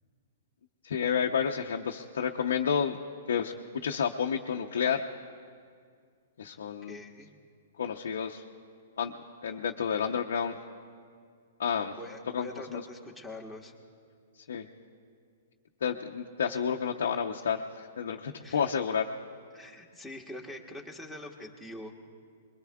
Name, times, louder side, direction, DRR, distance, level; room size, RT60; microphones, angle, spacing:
voice 1, 0.8-3.0 3.3-5.1 6.4-7.0 7.8-8.4 9.0-9.1 9.4-10.6 11.6-11.9 12.3-12.8 14.5-14.7 15.8-19.1, left 7 dB, 80° left, 1 dB, 0.7 m, -30 dB
voice 2, 6.9-7.3 12.0-13.7 18.4-18.6 19.5-22.0, left 1 dB, ahead, 2 dB, 1.4 m, -44 dB
23.0 x 22.0 x 2.3 m, 2.1 s
hypercardioid pair, 140°, 0 cm